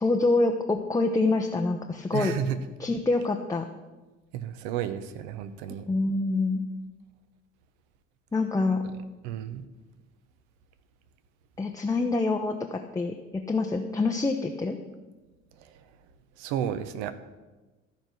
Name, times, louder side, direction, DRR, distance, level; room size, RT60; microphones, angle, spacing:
voice 1, 0.0-2.3 2.8-3.7 5.9-6.6 8.3-8.8 11.6-14.8, left 3 dB, 10° left, 3 dB, 0.7 m, -26 dB
voice 2, 2.1-2.6 4.3-5.9 9.2-9.6 15.6-15.8 16.4-17.1, right 9 dB, 60° right, 11 dB, 0.9 m, -32 dB
13.0 x 5.1 x 6.0 m, 1.2 s
figure-of-eight pair, 60°, 39 cm